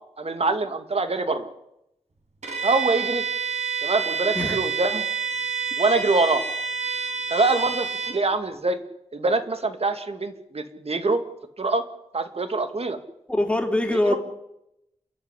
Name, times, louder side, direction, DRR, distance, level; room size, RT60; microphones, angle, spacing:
voice 1, 0.2-1.5 2.6-3.2 3.8-5.0 5.8-6.4 7.3-8.8 9.1-11.2 11.6-11.8 12.1-13.0 14.1-14.2, right 3 dB, 55° right, 8 dB, 2.2 m, -24 dB
Bowed string instrument, 2.4-8.2, right 5 dB, 75° right, 5.3 m, -28 dB
voice 2, 13.3-14.2, left 1 dB, 10° left, 2 dB, 3.2 m, -23 dB
29.0 x 12.0 x 9.9 m, 0.84 s
wide cardioid pair, 85°, 12 cm